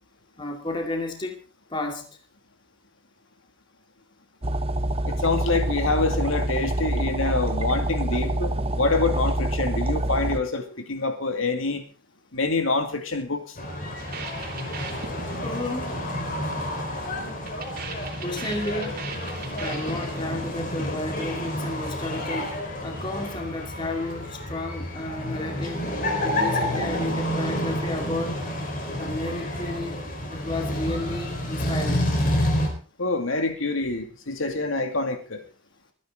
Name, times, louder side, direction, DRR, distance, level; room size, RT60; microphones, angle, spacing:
voice 1, 0.4-1.4 1.7-2.2 15.4-16.1 18.2-19.0 19.6-25.9 26.2-28.4 29.0-30.0 30.3-32.1, left 2 dB, 20° left, 3 dB, 2.4 m, -32 dB
sound 1, 4.4-10.4, right 1 dB, 25° right, 0.8 m, -26 dB
voice 2, 5.0-11.8 12.3-13.6 33.0-35.4, left 3 dB, 70° left, 5 dB, 2.4 m, -26 dB
sound 2, 13.6-32.7, left 1 dB, 40° left, 4.4 m, -29 dB
sound 3, 14.0-21.3, right 5 dB, 45° right, 3.0 m, -41 dB
24.0 x 9.9 x 3.9 m, 0.36 s
head